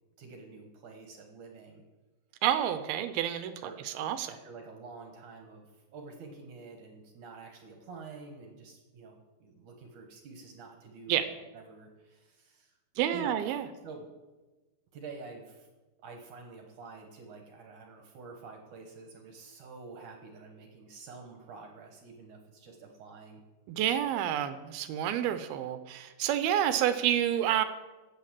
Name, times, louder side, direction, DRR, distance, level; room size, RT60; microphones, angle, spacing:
voice 1, 0.2-1.8 3.6-3.8 4.3-12.8 13.1-13.4 13.8-14.1 14.9-15.7 16.0-23.4, right 4 dB, 65° right, 3 dB, 2.2 m, -48 dB
voice 2, 2.4-4.3 11.1-11.3 13.0-13.7 23.7-27.6, right 11 dB, 80° right, 10 dB, 2.3 m, -29 dB
11.0 x 8.5 x 7.4 m, 1.2 s
omnidirectional pair, 4.9 m